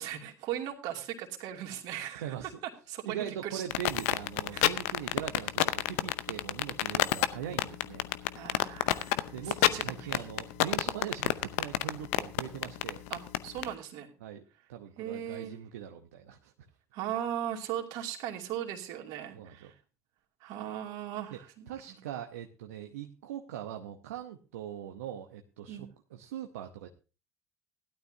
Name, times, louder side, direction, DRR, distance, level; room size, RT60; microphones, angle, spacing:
voice 1, 0.0-2.3 2.9-3.6 4.5-4.7 8.3-10.3 13.1-14.1 15.0-15.6 16.9-19.7 20.4-21.7 25.7-25.9, right 10 dB, 65° right, 2 dB, 2.6 m, -38 dB
voice 2, 2.1-2.6 3.0-8.1 9.3-13.0 14.2-14.4 14.7-16.5 19.3-19.7 21.3-21.4 21.7-26.9, right 10 dB, 80° right, 5 dB, 0.8 m, -41 dB
sound 1, 3.7-13.7, left 16 dB, 75° left, 0.7 m, -28 dB
16.5 x 12.0 x 2.7 m, 0.32 s
hypercardioid pair, 60°, 8 cm